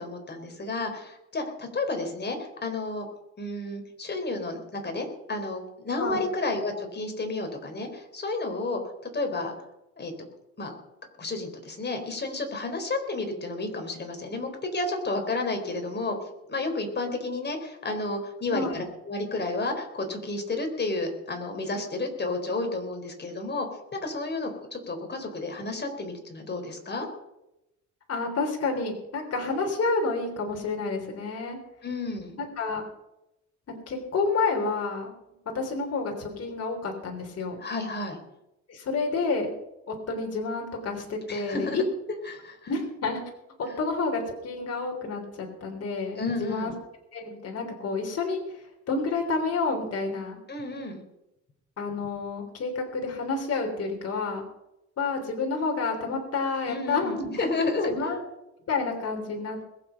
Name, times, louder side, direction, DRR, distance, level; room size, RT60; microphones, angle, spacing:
voice 1, 0.0-3.1 3.4-8.8 9.1-9.5 10.0-10.1 10.6-10.7 11.2-16.2 16.5-27.1 31.8-32.4 37.6-38.2 41.3-41.8 42.3-42.6 46.2-46.7 50.5-51.0 56.7-57.9, left 2 dB, 35° left, 5 dB, 4.0 m, -31 dB
voice 2, 18.5-18.8 28.1-31.6 32.4-32.8 33.9-35.1 35.5-37.6 38.7-39.5 39.9-41.8 42.7-43.2 43.6-46.7 47.1-50.4 51.8-54.4 55.0-57.4 57.8-58.2 58.7-59.6, left 4 dB, 55° left, 2 dB, 3.5 m, -29 dB
21.0 x 7.9 x 5.8 m, 0.89 s
cardioid pair, 90°, 30 cm